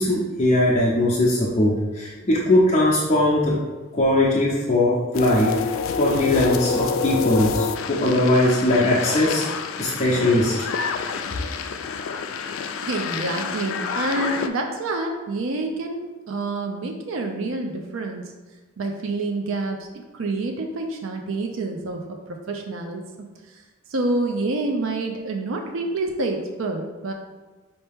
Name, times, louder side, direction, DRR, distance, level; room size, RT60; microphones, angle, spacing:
voice 1, 0.0-3.6 3.9-9.4 9.8-10.5, left 1 dB, 30° left, -6 dB, 0.7 m, -20 dB
sound 1, 5.1-14.5, left 5 dB, 75° left, 0.3 m, -28 dB
voice 2, 12.8-18.3 18.8-19.8 20.1-23.6 23.9-27.1, right 2 dB, 75° right, 3 dB, 0.5 m, -28 dB
5.4 x 2.9 x 3.5 m, 1.2 s
head